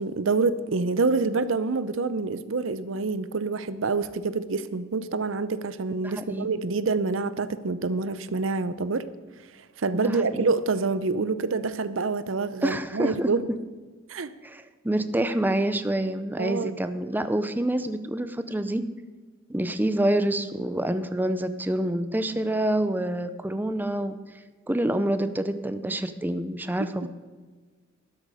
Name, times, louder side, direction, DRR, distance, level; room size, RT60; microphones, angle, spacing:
voice 1, 0.0-9.1 9.8-13.5 14.1-14.3 16.4-16.7, right 4 dB, 85° right, 14 dB, 0.7 m, -27 dB
voice 2, 6.0-6.5 9.9-10.4 12.6-13.3 14.4-18.8 19.5-24.2 24.7-27.1, right 1 dB, 10° right, 10 dB, 0.5 m, -27 dB
12.5 x 10.5 x 4.9 m, 1.4 s
head